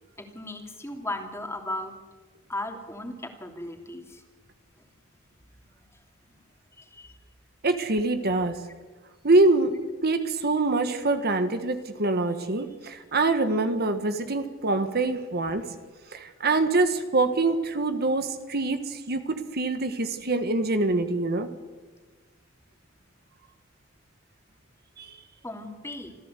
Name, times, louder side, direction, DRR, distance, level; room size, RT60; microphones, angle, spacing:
voice 1, 0.2-1.9 2.5-4.2 6.8-7.2 25.4-26.2, left 1 dB, 15° left, 4 dB, 3.0 m, -36 dB
voice 2, 7.6-8.6 9.2-9.7 10.0-15.6 16.1-21.5 25.0-25.1, right 2 dB, 50° right, 8 dB, 1.5 m, -25 dB
26.5 x 15.0 x 8.3 m, 1.3 s
head